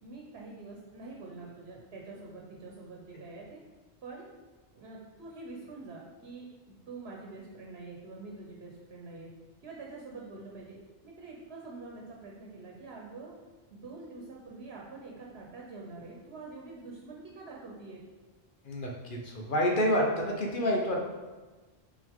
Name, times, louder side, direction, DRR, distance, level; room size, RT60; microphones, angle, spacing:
voice 1, 0.0-3.6 4.0-4.3 4.7-9.3 9.6-10.8 11.0-13.3 13.7-18.0, right 3 dB, 80° right, -2 dB, 1.1 m, -46 dB
voice 2, 18.6-21.0, equal, 55° left, 0 dB, 1.1 m, -28 dB
6.2 x 4.3 x 3.6 m, 1.3 s
omnidirectional pair, 1.0 m